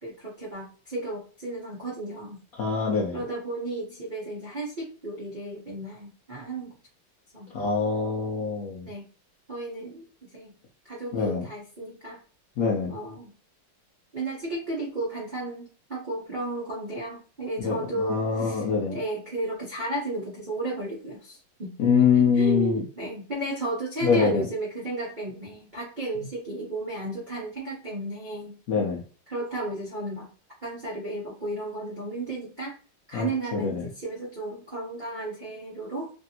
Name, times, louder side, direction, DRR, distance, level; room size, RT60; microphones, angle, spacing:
voice 1, 0.0-2.4 3.1-6.7 7.3-7.5 8.8-9.1 9.5-10.6 10.8-12.2 12.9-13.3 14.1-21.8 22.1-28.6 29.3-30.3 30.6-32.7 33.1-36.1, right 2 dB, 70° right, -5 dB, 0.4 m, -34 dB
voice 2, 2.6-3.2 7.5-8.9 11.1-11.4 12.6-12.9 17.6-19.0 21.8-22.8 24.0-24.4 28.7-29.0 33.1-33.9, left 5 dB, 80° left, -3 dB, 0.8 m, -24 dB
3.2 x 2.6 x 2.8 m, 0.39 s
omnidirectional pair, 2.3 m